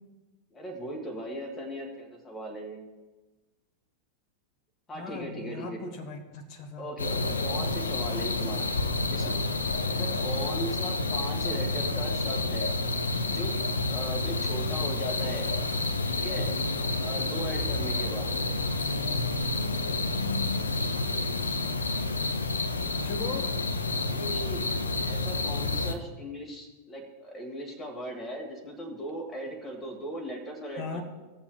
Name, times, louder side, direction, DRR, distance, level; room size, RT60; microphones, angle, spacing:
voice 1, 0.5-2.8 4.9-6.0 6.8-8.7 9.1-9.5 9.9-12.7 13.3-15.5 16.1-16.5 17.0-18.3 24.0-24.7 25.1-31.0, right 1 dB, 15° left, 0 dB, 1.8 m, -38 dB
voice 2, 4.9-6.9 23.0-23.6 30.8-31.0, left 4 dB, 40° left, 8 dB, 1.2 m, -38 dB
sound 1, 7.0-25.9, left 2 dB, 75° left, 0.6 m, -29 dB
17.5 x 7.2 x 2.3 m, 1.2 s
figure-of-eight pair, 90°, 0 cm